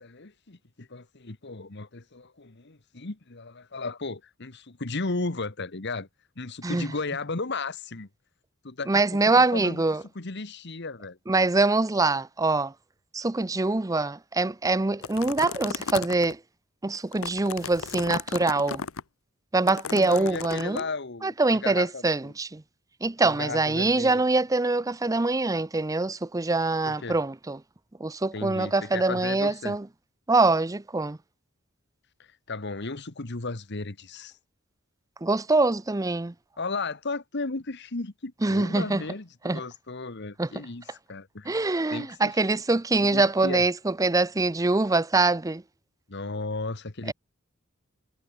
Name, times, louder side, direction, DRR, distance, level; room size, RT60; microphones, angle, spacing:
voice 1, 0.0-6.1 6.4-8.1 8.6-9.8 10.1-11.2 19.8-21.3 21.6-22.3 23.4-24.2 26.8-27.2 28.3-29.8 32.2-34.4 36.6-40.8 41.1-42.1 43.0-43.6 46.1-47.1, left 3 dB, 55° left, 1.4 m, -35 dB
voice 2, 8.9-10.0 11.3-12.7 13.1-16.4 16.8-18.8 19.5-20.8 21.2-22.6 23.0-27.6 28.0-29.9 30.3-31.2 35.2-36.3 38.4-39.0 39.4-39.6 40.4-40.5 41.5-45.6, right 3 dB, 15° right, 0.5 m, -24 dB
sound 1, 15.0-16.3 16.9-19.0 19.7-20.8, left 6 dB, 85° left, 0.9 m, -35 dB
head